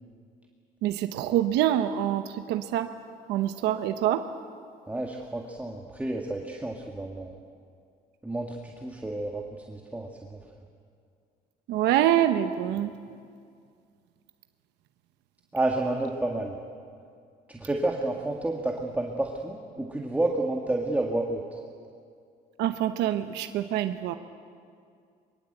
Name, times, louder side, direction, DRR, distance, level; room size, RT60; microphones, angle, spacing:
voice 1, 0.8-2.9 3.3-4.2 11.7-12.9 22.6-24.2, right 12 dB, 85° right, 9 dB, 1.0 m, -25 dB
voice 2, 4.9-7.3 8.2-10.4 15.5-16.5 17.5-21.4, right 2 dB, 10° right, 1 dB, 1.9 m, -30 dB
23.0 x 23.0 x 8.1 m, 2.3 s
cardioid pair, 110°, 17 cm